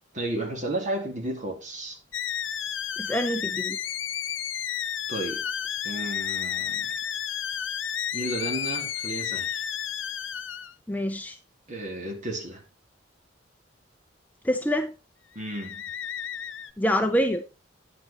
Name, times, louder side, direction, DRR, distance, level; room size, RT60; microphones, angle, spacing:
voice 1, 0.1-2.0 5.1-5.4 5.8-6.9 8.1-9.6 11.7-12.6 15.3-15.9, right 1 dB, 40° right, 2.6 m, -33 dB
sound 1, 2.1-10.7 15.4-16.7, left 9 dB, 90° left, 0.8 m, -32 dB
voice 2, 3.0-3.8 10.9-11.4 14.4-14.9 16.8-17.4, equal, 10° left, 0.6 m, -26 dB
9.7 x 7.9 x 4.2 m
head